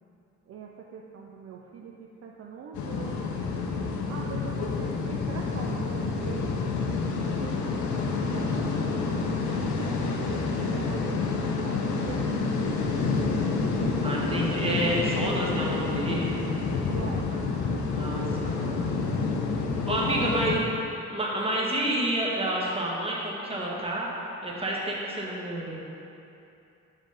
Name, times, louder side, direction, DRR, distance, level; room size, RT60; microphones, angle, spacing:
voice 1, 0.5-3.5 4.1-6.7 7.2-9.2 9.5-12.9 16.8-19.0 19.9-20.3, right 6 dB, 50° right, -1 dB, 0.6 m, -42 dB
sound 1, 2.7-20.6, left 4 dB, 70° left, 0.8 m, -28 dB
voice 2, 14.0-16.3 17.9-18.6 19.9-20.6 21.1-24.1 24.4-25.8, right 1 dB, 20° right, -4 dB, 1.5 m, -29 dB
5.6 x 5.2 x 5.2 m, 2.8 s
cardioid pair, 90°, 30 cm